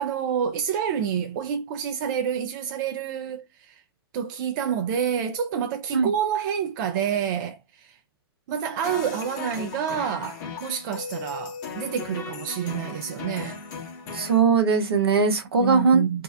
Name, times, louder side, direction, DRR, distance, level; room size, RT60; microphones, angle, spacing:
voice 1, 0.0-3.8 4.1-8.0 8.5-13.6 15.5-16.2, right 8 dB, 50° right, 0.4 m, -28 dB
sound 1, 8.8-14.4, left 6 dB, 50° left, 0.9 m, -37 dB
voice 2, 14.1-16.0, right 5 dB, 75° right, 0.7 m, -20 dB
2.6 x 2.1 x 2.3 m
hypercardioid pair, 105°, 13 cm